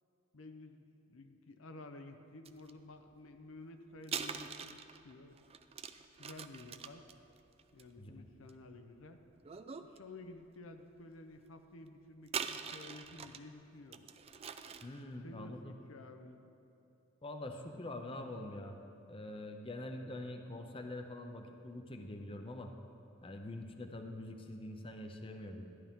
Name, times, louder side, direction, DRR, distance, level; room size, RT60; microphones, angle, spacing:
voice 1, 0.3-5.4 6.2-7.0 7.7-9.2 9.8-14.0 15.2-16.4, left 2 dB, 85° left, 6 dB, 0.7 m, -52 dB
sound 1, 2.5-2.7 4.0-8.8 9.4-10.0 10.4-10.5 12.3-13.5 13.9-15.0, right 6 dB, 30° right, 0.4 m, -43 dB
voice 2, 14.8-15.7 17.2-18.8 19.1-22.7 23.2-25.7, left 1 dB, 25° left, 4 dB, 0.6 m, -45 dB
14.0 x 10.5 x 3.7 m, 2.8 s
head